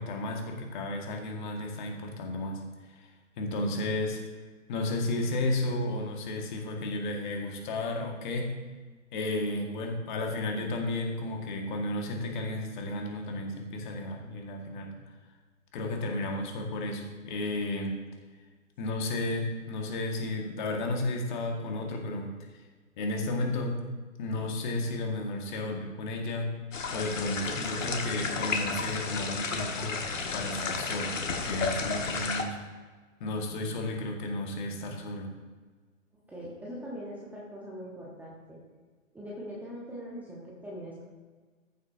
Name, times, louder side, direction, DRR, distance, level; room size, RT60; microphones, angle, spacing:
voice 1, 0.0-2.6 2.9-3.1 3.4-4.2 4.7-8.5 9.1-15.0 15.7-18.1 18.8-22.3 23.0-23.8 24.2-26.5 26.9-30.0 30.3-32.6 33.2-35.4, left 2 dB, 35° left, 2 dB, 1.6 m, -33 dB
sound 1, 26.7-32.4, left 4 dB, 65° left, 1.5 m, -32 dB
voice 2, 36.1-38.6 39.1-41.0, equal, 5° right, -5 dB, 1.0 m, -42 dB
14.5 x 7.5 x 2.7 m, 1.4 s
figure-of-eight pair, 135°, 41 cm